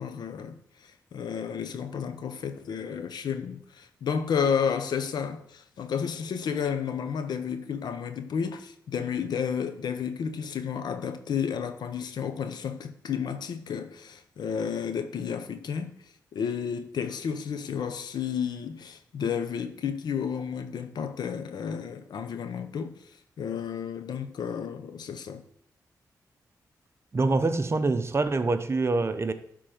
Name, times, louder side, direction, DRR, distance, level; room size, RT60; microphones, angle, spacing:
voice 1, 0.0-23.1 23.4-25.4, left 7 dB, 80° left, 0.7 m, -32 dB
voice 2, 27.1-29.3, right 3 dB, 40° right, 0.7 m, -25 dB
10.0 x 3.9 x 5.0 m
cardioid pair, 65°, 7 cm